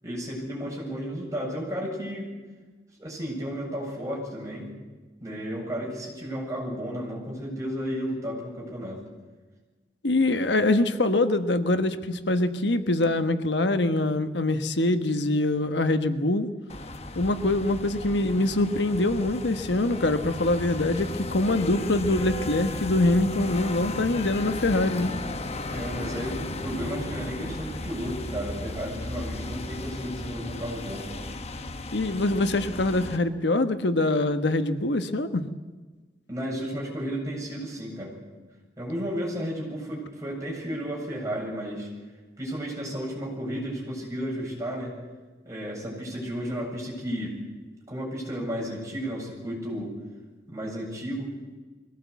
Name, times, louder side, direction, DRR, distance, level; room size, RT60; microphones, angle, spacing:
voice 1, 0.0-2.3 3.0-4.7 5.2-9.0 25.7-31.1 36.3-38.2 38.8-41.9 42.4-44.9 45.4-47.4 47.9-50.0 50.5-51.3, equal, 20° right, -3 dB, 7.8 m, -33 dB
voice 2, 10.0-16.5 17.1-25.2 31.9-35.5, left 2 dB, 80° left, 9 dB, 1.3 m, -24 dB
sound 1, 16.7-33.2, left 2 dB, 35° left, 1.2 m, -35 dB
22.5 x 17.5 x 8.3 m, 1.3 s
head